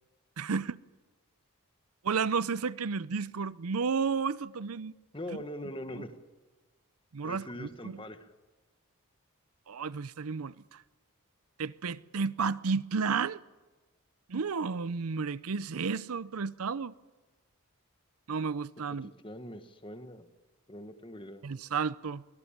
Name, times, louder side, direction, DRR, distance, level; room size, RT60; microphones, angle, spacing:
voice 1, 0.4-0.8 2.0-4.9 7.1-8.0 9.7-10.8 11.6-13.4 14.3-16.9 18.3-19.1 21.4-22.2, right 5 dB, 80° right, 0.6 m, -32 dB
voice 2, 5.1-6.2 7.2-8.3 19.0-20.3 20.7-21.4, left 1 dB, 25° left, 1.3 m, -42 dB
23.5 x 18.0 x 7.3 m
head